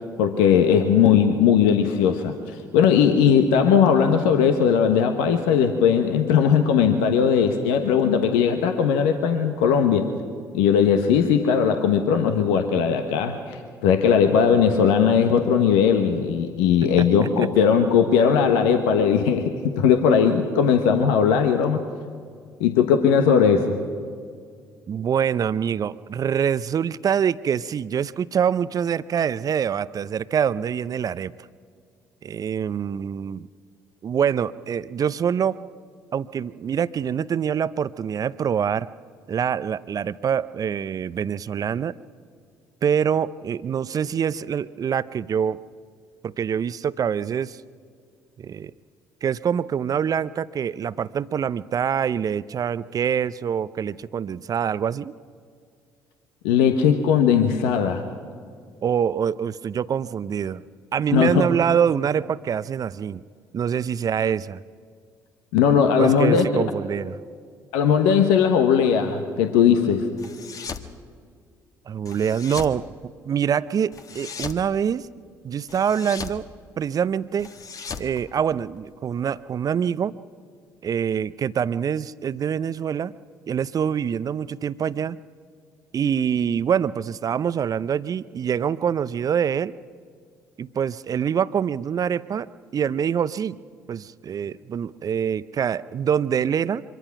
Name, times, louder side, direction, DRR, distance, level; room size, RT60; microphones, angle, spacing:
voice 1, 0.2-10.1 10.5-21.8 22.6-23.8 56.4-58.0 61.1-61.5 65.5-66.6 67.7-70.0, left 7 dB, 70° left, 6 dB, 1.2 m, -19 dB
voice 2, 17.0-17.5 24.9-31.3 32.2-33.5 34.0-35.6 36.1-38.9 39.3-42.0 42.8-45.6 46.2-47.6 48.4-48.7 49.2-55.1 58.8-60.6 60.9-63.2 63.5-64.6 66.0-67.2 71.9-72.8 73.3-75.1 75.4-76.5 76.8-77.5 78.0-80.2 80.8-83.1 83.5-85.2 85.9-89.7 90.6-92.5 92.7-93.6 93.9-96.8, right 8 dB, 45° right, 17 dB, 0.6 m, -25 dB
sound 1, 70.2-70.9 72.1-72.8 73.9-74.6 75.7-76.4 77.4-78.9, left 5 dB, 40° left, 1.4 m, -37 dB
24.0 x 22.5 x 6.0 m, 2.1 s
hypercardioid pair, 50°, 9 cm